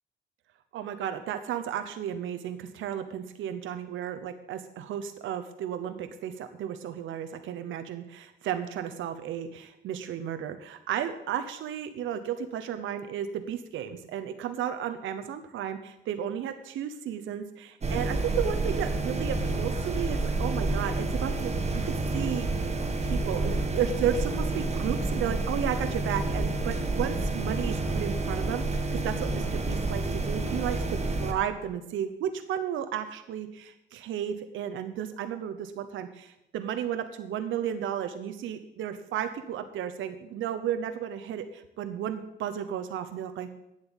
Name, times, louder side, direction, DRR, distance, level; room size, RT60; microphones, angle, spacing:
voice 1, 0.7-43.5, right 9 dB, 80° right, 9 dB, 0.9 m, -33 dB
sound 1, 17.8-31.3, right 2 dB, 35° right, 1.8 m, -29 dB
9.0 x 7.7 x 9.0 m, 0.87 s
cardioid pair, 90°, 20 cm